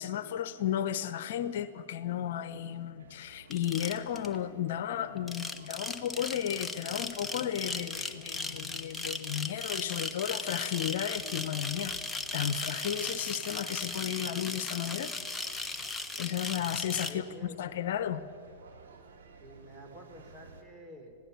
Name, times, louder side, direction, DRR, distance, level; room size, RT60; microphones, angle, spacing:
voice 1, 0.0-12.0 12.3-15.1 15.5-15.8 16.2-17.2 17.6-18.2, left 10 dB, 60° left, 13 dB, 0.9 m, -34 dB
sound 1, 3.0-20.6, right 4 dB, 70° right, 2.7 m, -56 dB
sound 2, 3.5-4.4 5.2-17.1, left 2 dB, 5° left, 1.2 m, -37 dB
voice 2, 17.1-17.6 19.4-21.2, equal, 20° right, 4 dB, 4.0 m, -49 dB
26.0 x 17.5 x 7.0 m, 2.5 s
hypercardioid pair, 110°, 0 cm